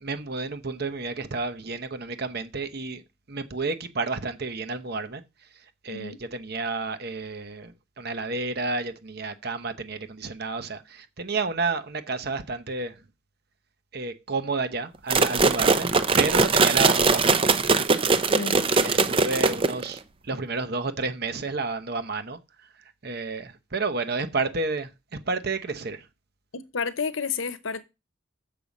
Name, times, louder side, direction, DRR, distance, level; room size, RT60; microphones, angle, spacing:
voice 1, 0.0-3.0 3.3-5.2 5.8-13.0 13.9-15.9 16.2-17.7 18.6-22.4 23.0-26.1, right 3 dB, 55° right, 0.9 m, -31 dB
voice 2, 5.9-6.2 15.7-15.8 18.3-18.7 26.5-27.8, left 5 dB, 85° left, 0.9 m, -31 dB
sound 1, 15.1-20.0, right 4 dB, 25° right, 0.5 m, -21 dB
6.8 x 5.2 x 7.1 m
head